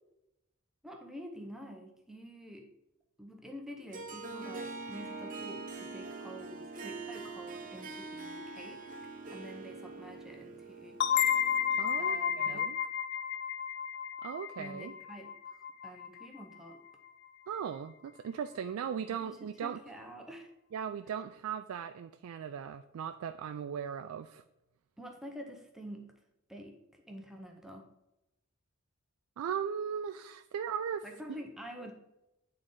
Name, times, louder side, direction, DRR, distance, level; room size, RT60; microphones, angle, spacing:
voice 1, 0.8-2.7 3.2-8.8 9.3-11.0 12.0-12.7 14.6-16.8 19.1-20.5 25.0-26.1 26.5-27.9 31.0-31.9, equal, ahead, 2 dB, 0.6 m, -47 dB
Harp, 3.9-12.4, right 3 dB, 40° right, 0.7 m, -44 dB
sound 1, 11.0-16.4, left 8 dB, 50° left, 0.4 m, -32 dB
voice 2, 11.8-12.8 14.2-14.9 17.5-19.8 20.7-24.4 29.4-31.4, right 7 dB, 85° right, 9 dB, 0.3 m, -38 dB
8.9 x 3.8 x 3.8 m, 0.91 s
head